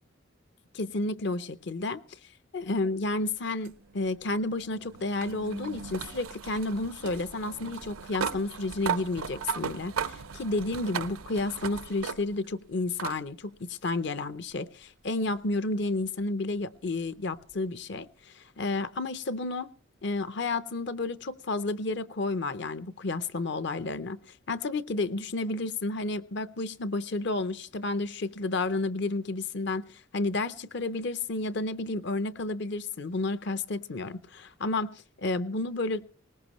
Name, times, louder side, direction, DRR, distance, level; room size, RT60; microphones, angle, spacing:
voice 1, 0.7-2.0 2.5-19.7 20.0-24.2 24.5-36.1, left 2 dB, 55° left, 0.6 m, -31 dB
sound 1, 3.6-12.5 13.0-13.2 14.5-14.6 17.5-17.6, right 7 dB, 85° right, 0.6 m, -37 dB
20.0 x 18.5 x 3.0 m
head